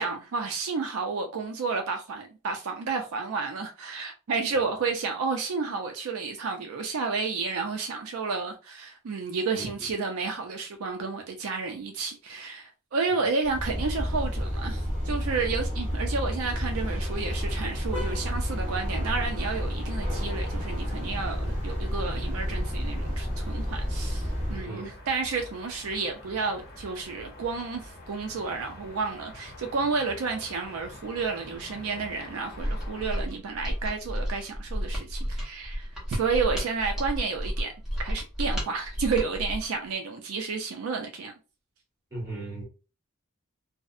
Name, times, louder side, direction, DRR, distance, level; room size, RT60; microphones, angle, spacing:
voice 1, 0.0-37.7 38.0-41.3, right 4 dB, 70° right, 0.4 m, -31 dB
sound 1, 13.4-24.7, equal, 35° right, 0.9 m, -30 dB
sound 2, 16.6-33.1, left 1 dB, 45° left, 0.8 m, -46 dB
voice 2, 24.5-24.9 42.1-42.7, right 2 dB, 15° right, 1.4 m, -37 dB
Mechanisms, 32.5-39.7, equal, ahead, 0.8 m, -32 dB
2.5 x 2.0 x 2.4 m
head